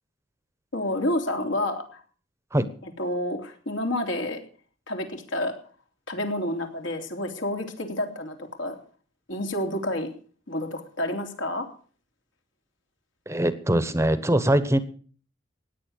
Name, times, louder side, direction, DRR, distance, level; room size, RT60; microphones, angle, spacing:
voice 1, 0.7-2.0 2.8-4.4 4.9-5.5 6.1-8.8 9.3-10.1 10.5-11.7, left 1 dB, 70° left, 3 dB, 3.4 m, -29 dB
voice 2, 13.3-14.8, right 1 dB, 15° right, 13 dB, 1.1 m, -22 dB
17.0 x 9.9 x 6.6 m, 0.43 s
head